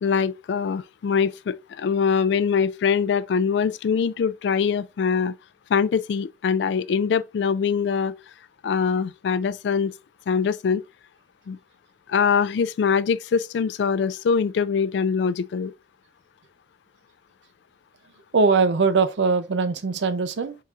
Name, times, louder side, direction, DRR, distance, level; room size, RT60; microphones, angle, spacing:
voice 1, 0.0-5.3 5.7-8.1 8.6-9.9 10.3-10.8 11.5-11.6 12.1-15.7, left 6 dB, 75° left, 0.3 m, -23 dB
voice 2, 18.3-20.6, right 4 dB, 75° right, 0.5 m, -21 dB
4.2 x 3.7 x 2.4 m
head